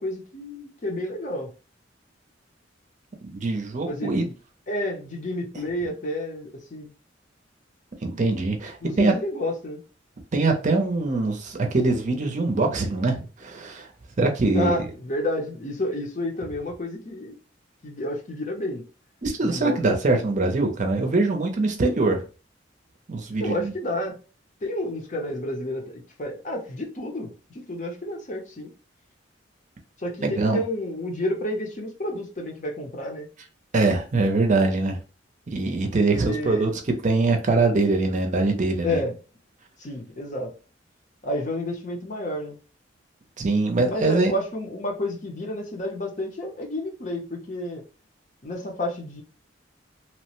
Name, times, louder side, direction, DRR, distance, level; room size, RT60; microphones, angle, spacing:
voice 1, 0.0-1.5 3.9-4.3 4.7-6.9 8.8-9.8 14.5-17.4 17.8-18.8 19.4-19.8 23.4-24.2 24.6-28.7 30.0-33.3 36.1-36.7 38.8-39.2 39.8-40.5 41.2-42.6 43.9-47.8 48.4-49.2, left 1 dB, 40° left, 0.7 m, -30 dB
voice 2, 3.3-4.2 8.0-9.1 10.3-13.9 14.2-14.7 19.2-22.2 23.1-23.7 30.2-30.6 33.7-35.0 35.5-36.7 37.0-39.0 43.4-44.3, right 3 dB, 40° right, 0.6 m, -23 dB
3.0 x 2.1 x 2.9 m
head